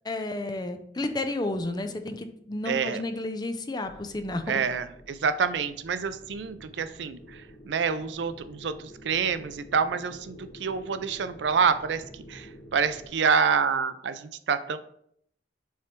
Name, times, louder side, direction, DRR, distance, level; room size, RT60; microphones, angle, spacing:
voice 1, 0.0-4.6, left 2 dB, 25° left, 7 dB, 0.5 m, -32 dB
voice 2, 2.6-3.0 4.5-14.8, right 6 dB, 80° right, 12 dB, 0.4 m, -27 dB
sound 1, 3.8-13.1, equal, 70° left, 1.6 m, -49 dB
6.8 x 3.3 x 4.4 m, 0.69 s
head